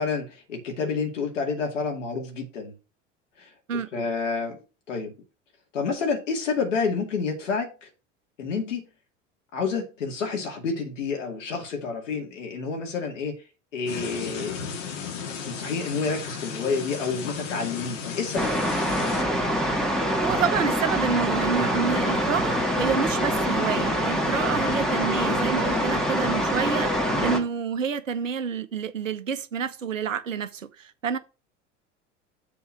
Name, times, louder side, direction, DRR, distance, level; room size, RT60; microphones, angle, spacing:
voice 1, 0.0-2.7 3.4-3.5 3.9-4.6 4.9-5.1 5.7-7.9 8.4-8.9 9.5-13.3 13.7-14.7 15.4-18.5 27.1-27.4, left 5 dB, 75° left, 2.3 m, -29 dB
sound 1, 13.8-19.2, left 6 dB, 60° left, 1.8 m, -35 dB
sound 2, 18.3-27.4, equal, ahead, 2.0 m, -25 dB
voice 2, 20.2-26.9 27.2-31.2, right 7 dB, 90° right, 0.7 m, -28 dB
7.1 x 3.7 x 6.3 m
figure-of-eight pair, 75°, 37 cm